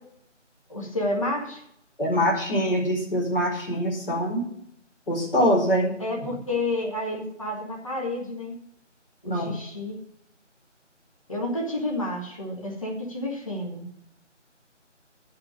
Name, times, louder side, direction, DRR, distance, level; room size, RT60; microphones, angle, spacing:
voice 1, 0.7-1.6 6.0-8.6 9.2-10.0 11.3-13.9, left 1 dB, 25° left, -2 dB, 1.9 m, -30 dB
voice 2, 2.0-4.4 5.1-5.9 6.2-6.3 9.3-9.6, equal, 45° left, -2 dB, 4.5 m, -24 dB
9.6 x 5.9 x 8.5 m, 0.72 s
figure-of-eight pair, 170°, 37 cm